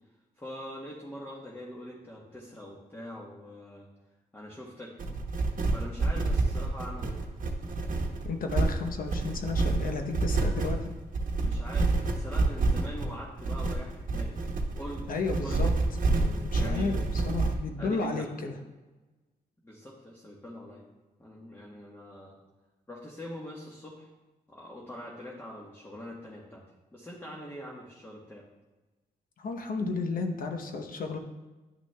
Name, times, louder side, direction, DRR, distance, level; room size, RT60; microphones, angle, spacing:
voice 1, 0.4-3.9 4.3-4.9 5.7-7.2 11.4-14.4 14.8-15.1 15.4-15.7 16.6-16.9 17.8-18.3 19.6-20.8 21.2-22.4 22.9-24.1 24.5-26.6 26.9-28.5, equal, 15° left, -3 dB, 1.1 m, -43 dB
sound 1, 5.0-17.5, right 3 dB, 55° right, 1.0 m, -28 dB
voice 2, 8.2-10.8 15.1-15.7 16.1-18.5 29.4-31.2, left 4 dB, 60° left, 4 dB, 0.8 m, -33 dB
10.5 x 6.0 x 2.2 m, 1.2 s
cardioid pair, 75°, 16 cm